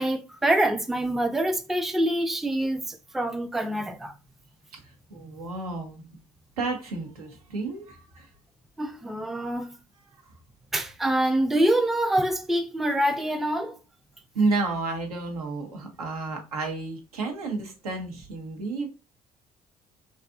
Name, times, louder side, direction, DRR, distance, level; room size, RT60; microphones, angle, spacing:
voice 1, 0.0-4.1 8.8-9.7 10.7-13.8, right 1 dB, ahead, 0.3 m, -25 dB
voice 2, 5.1-6.0 6.6-8.3 14.3-18.9, right 3 dB, 90° right, 0.7 m, -31 dB
2.5 x 2.4 x 2.4 m
hypercardioid pair, 55°, 19 cm